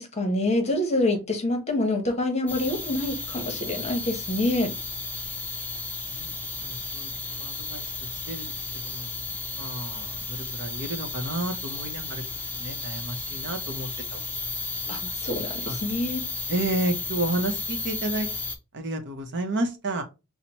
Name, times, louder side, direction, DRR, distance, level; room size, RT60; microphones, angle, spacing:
voice 1, 0.0-4.7 14.9-16.2, left 1 dB, 30° left, 0.9 m, -26 dB
sound 1, 2.5-18.6, left 3 dB, 10° left, 0.6 m, -33 dB
voice 2, 6.6-7.8 8.3-8.5 8.8-9.1 9.6-10.2 10.6-12.2 12.6-14.2 14.9-15.0 15.7-15.8 16.5-18.3 18.7-20.0, right 1 dB, 50° right, 0.8 m, -31 dB
5.6 x 2.1 x 2.9 m
head